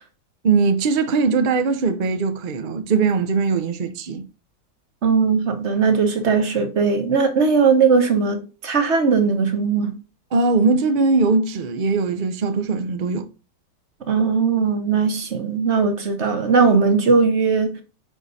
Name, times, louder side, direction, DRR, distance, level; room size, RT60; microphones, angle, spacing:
voice 1, 0.4-4.2 10.3-13.3, right 4 dB, 60° right, 0.5 m, -20 dB
voice 2, 5.0-10.0 14.1-17.8, right 5 dB, 45° right, 1.3 m, -19 dB
9.1 x 3.7 x 4.1 m
omnidirectional pair, 1.8 m